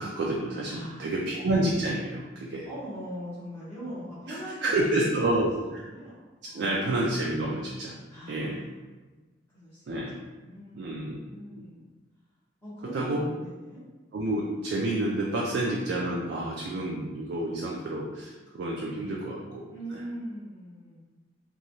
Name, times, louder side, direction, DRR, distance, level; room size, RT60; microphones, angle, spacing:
voice 1, 0.0-2.7 4.3-5.6 6.4-7.9 8.3-8.6 9.9-10.2 10.7-11.2 12.9-13.2 14.1-19.6, right 1 dB, 70° right, -3 dB, 0.3 m, -29 dB
voice 2, 0.7-1.1 2.6-5.4 5.8-6.2 6.5-6.8 8.1-8.7 9.5-9.8 10.1-11.9 12.6-13.8 19.7-21.0, equal, 10° left, -13 dB, 0.8 m, -41 dB
2.9 x 2.2 x 2.6 m, 1.3 s
head